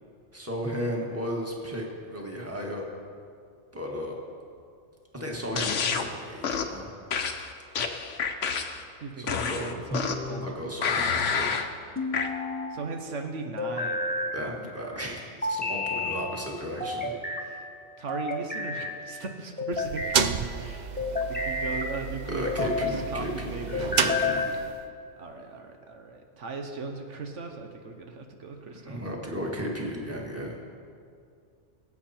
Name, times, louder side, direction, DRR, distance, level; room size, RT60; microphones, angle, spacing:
voice 1, 0.3-2.9 3.7-4.2 5.1-6.9 9.2-9.7 10.4-11.6 14.3-17.1 22.3-24.5 28.7-30.6, equal, 10° right, -1 dB, 1.8 m, -34 dB
sound 1, 5.6-6.1 6.4-6.8 7.1-8.8 9.3-10.3 10.8-11.7 12.1-12.3, left 6 dB, 85° left, 1.2 m, -28 dB
voice 2, 9.0-10.7 12.7-14.1 14.4-14.5 14.9-15.0 17.4-17.7 18.0-20.3 20.5-23.8 25.2-29.0, right 3 dB, 80° right, 4 dB, 1.3 m, -38 dB
sound 2, 9.9-10.6 11.9-12.7 13.6-14.4 15.4-16.2 16.8-17.5 18.1-18.9 19.6-20.2 21.0-21.9 22.4-23.0 23.7-24.6, left 3 dB, 10° left, 1.0 m, -30 dB
sound 3, 19.7-24.8, right 6 dB, 50° right, 0.5 m, -31 dB
21.0 x 8.5 x 4.4 m, 2.4 s
omnidirectional pair, 1.2 m